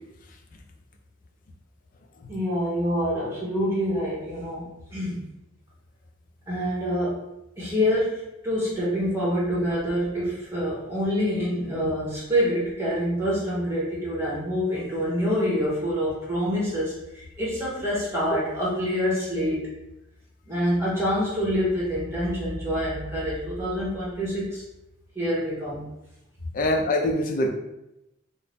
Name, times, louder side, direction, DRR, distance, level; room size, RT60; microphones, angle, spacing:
voice 1, 2.3-5.3 6.5-7.2 7.6-19.7 20.5-24.6 25.1-25.8, equal, 15° right, -7 dB, 0.9 m, -26 dB
voice 2, 26.5-27.5, left 1 dB, 45° left, 2 dB, 0.3 m, -23 dB
2.6 x 2.0 x 3.3 m, 0.89 s
head